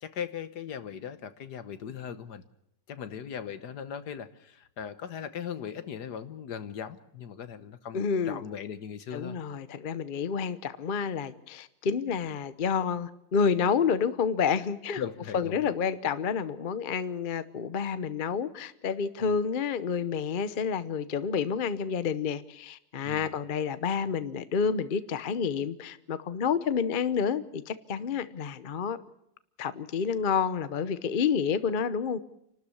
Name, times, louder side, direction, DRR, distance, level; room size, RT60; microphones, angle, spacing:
voice 1, 0.0-2.4 2.9-9.4 15.0-15.6 19.2-19.3 23.0-23.3, left 8 dB, 65° left, 12 dB, 1.6 m, -39 dB
voice 2, 7.9-8.4 9.1-15.0 15.3-29.0 29.6-32.2, left 6 dB, 45° left, 13 dB, 0.7 m, -29 dB
28.0 x 13.0 x 8.4 m, 0.79 s
omnidirectional pair, 1.9 m